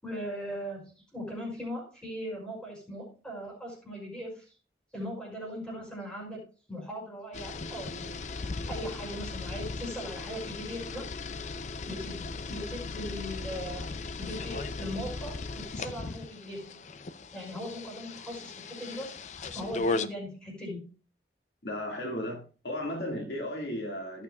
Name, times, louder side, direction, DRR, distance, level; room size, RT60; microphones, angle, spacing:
voice 1, 0.0-4.5 4.9-6.4 6.7-8.2 8.7-11.0 11.9-13.9 14.2-16.8 17.3-20.8, equal, 5° left, -4 dB, 5.6 m, -39 dB
sound 1, 7.3-20.1, left 3 dB, 40° left, 0.5 m, -37 dB
voice 2, 21.6-24.2, left 1 dB, 70° left, 1 dB, 2.0 m, -35 dB
17.0 x 7.0 x 2.3 m, 0.36 s
head